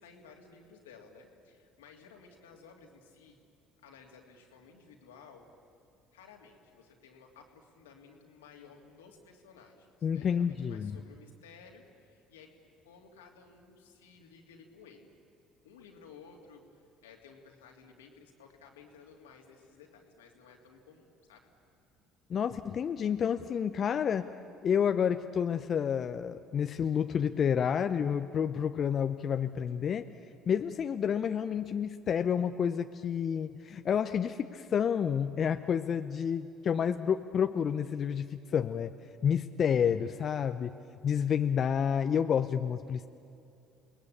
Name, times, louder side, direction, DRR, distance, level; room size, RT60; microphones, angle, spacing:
voice 1, 0.0-3.4 3.8-5.5 6.1-12.5 12.8-15.1 15.6-21.5, left 5 dB, 90° left, 2 dB, 2.8 m, -55 dB
voice 2, 10.0-11.0 22.3-24.3 24.6-30.0 30.5-38.9 39.2-40.7 41.0-43.1, left 8 dB, 50° left, 8 dB, 0.8 m, -29 dB
29.0 x 19.5 x 8.8 m, 2.6 s
hypercardioid pair, 65°, 0 cm